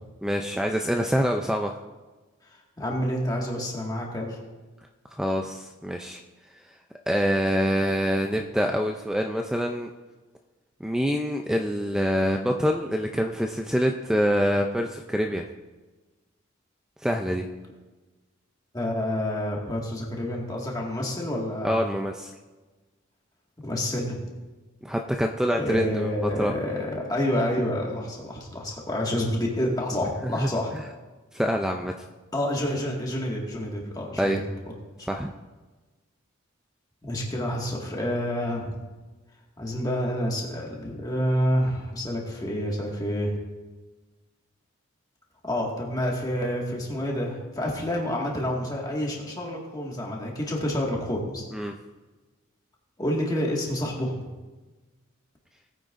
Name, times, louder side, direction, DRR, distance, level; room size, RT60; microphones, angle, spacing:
voice 1, 0.2-1.8 5.1-6.2 7.1-9.9 10.8-15.4 17.0-17.5 21.6-22.3 24.8-26.5 30.2-30.8 31.3-31.9 34.2-34.4 35.0-35.3 51.5-51.7, equal, 5° right, 3 dB, 0.4 m, -26 dB
voice 2, 2.8-4.4 18.7-21.8 23.6-24.2 25.6-30.7 32.3-34.3 35.0-35.1 37.0-38.8 39.6-43.4 45.4-51.4 53.0-54.3, equal, 15° left, -2 dB, 1.8 m, -28 dB
18.5 x 9.0 x 2.6 m, 1.2 s
head